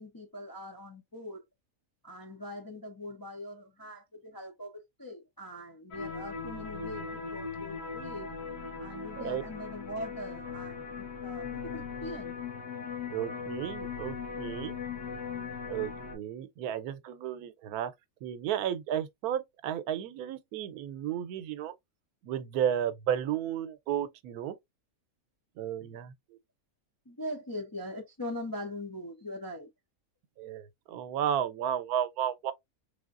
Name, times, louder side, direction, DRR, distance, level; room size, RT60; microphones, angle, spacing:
voice 1, 0.0-1.4 2.0-8.3 8.8-12.4 27.1-29.7, left 1 dB, 30° left, 0.3 m, -41 dB
sound 1, 5.9-16.2, left 5 dB, 85° left, 1.7 m, -39 dB
voice 2, 13.1-14.7 15.7-17.9 18.2-21.7 22.2-24.6 25.6-26.4 30.4-32.5, right 10 dB, 85° right, 1.1 m, -33 dB
3.7 x 3.4 x 2.4 m
omnidirectional pair, 1.5 m